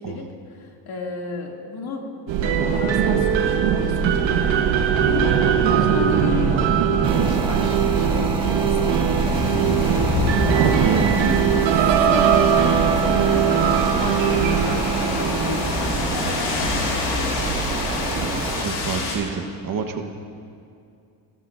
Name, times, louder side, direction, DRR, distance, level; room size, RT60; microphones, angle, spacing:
voice 1, 0.0-2.1 2.4-9.2 9.6-11.0 11.9-17.3, left 4 dB, 55° left, 0 dB, 2.6 m, -32 dB
sound 1, 2.3-18.8, right 8 dB, 85° right, 1.2 m, -21 dB
voice 2, 5.6-5.9 10.8-11.5 18.0-18.2 18.5-20.1, right 6 dB, 45° right, 5 dB, 1.3 m, -28 dB
sound 2, 7.0-18.6, right 1 dB, 10° right, 2.0 m, -29 dB
sound 3, 9.2-19.2, left 3 dB, 70° left, 3.5 m, -28 dB
27.5 x 14.5 x 2.6 m, 2.5 s
cardioid pair, 90°, 43 cm